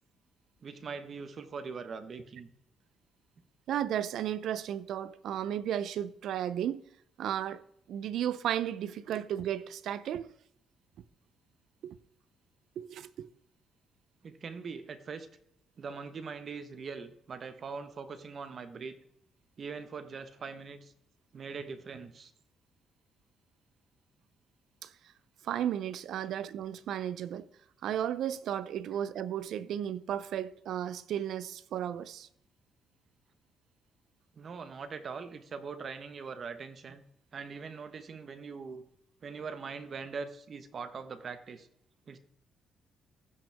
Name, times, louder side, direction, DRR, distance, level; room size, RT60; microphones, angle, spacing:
voice 1, 0.6-2.5 14.2-15.3 15.8-19.0 19.6-20.9 21.3-22.3 28.9-29.0 34.3-37.0 37.3-38.8 39.2-41.7 42.1-42.2, right 5 dB, 50° right, 1.2 m, -42 dB
voice 2, 3.7-6.8 7.2-7.6 7.9-10.3 11.8-12.0 12.8-13.3 24.8-24.9 25.4-27.5 27.8-32.3, right 10 dB, 75° right, 0.6 m, -34 dB
15.5 x 6.0 x 3.5 m
cardioid pair, 90°, 0 cm